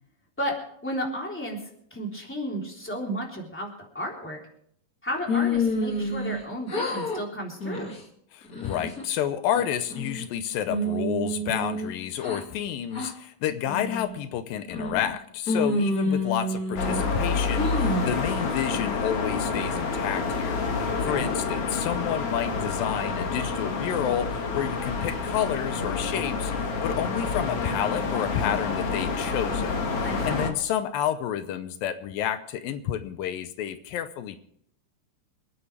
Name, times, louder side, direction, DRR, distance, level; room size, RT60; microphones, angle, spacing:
voice 1, 0.8-1.6 1.9-4.4 5.0-7.9 20.9-21.3 30.0-30.2, equal, 5° left, -1 dB, 3.0 m, -33 dB
sound 1, 5.3-6.4 6.7-7.2 7.6-8.0 8.5-9.0 9.5-10.3 10.7-12.4 12.9-13.1 13.7-14.1 14.7-15.1 15.5-17.1 17.6-18.1, left 1 dB, 30° left, 2.2 m, -28 dB
voice 2, 8.3-26.5 26.8-29.9 30.2-34.4, left 10 dB, 85° left, 11 dB, 2.6 m, -30 dB
sound 2, 16.8-30.5, left 4 dB, 50° left, 2.2 m, -28 dB
27.5 x 9.7 x 3.4 m, 0.67 s
omnidirectional pair, 4.0 m